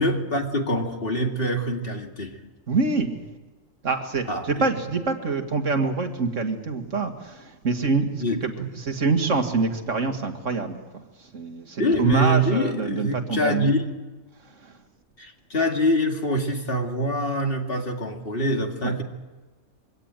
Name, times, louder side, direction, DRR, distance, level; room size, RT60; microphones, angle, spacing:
voice 1, 0.0-2.4 4.3-4.6 8.2-8.7 11.8-13.8 15.2-19.0, equal, 45° left, 3 dB, 2.5 m, -25 dB
voice 2, 2.7-3.2 3.8-13.7 14.4-14.8 18.8-19.0, right 4 dB, 70° right, 5 dB, 2.3 m, -26 dB
24.0 x 17.5 x 9.1 m, 1.2 s
omnidirectional pair, 1.3 m